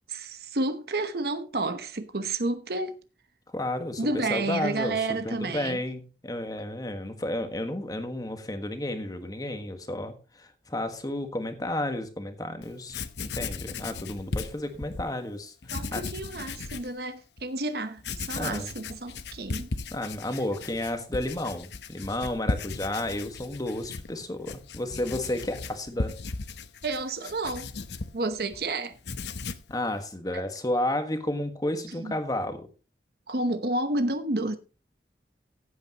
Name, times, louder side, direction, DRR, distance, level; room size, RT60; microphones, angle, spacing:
voice 1, 0.1-3.0 4.0-5.8 15.7-19.7 26.8-27.7 28.1-29.0 30.3-30.4 32.0-32.1 33.3-34.6, right 2 dB, 60° right, 1.0 m, -30 dB
voice 2, 3.5-5.0 5.2-16.0 18.3-18.7 19.9-26.2 29.7-32.7, left 1 dB, 20° left, 1.5 m, -32 dB
Writing, 12.6-12.7 12.9-15.1 15.6-16.9 17.4-17.5 18.0-28.6 28.9-29.7, left 3 dB, 80° left, 0.9 m, -36 dB
15.5 x 8.5 x 3.0 m
head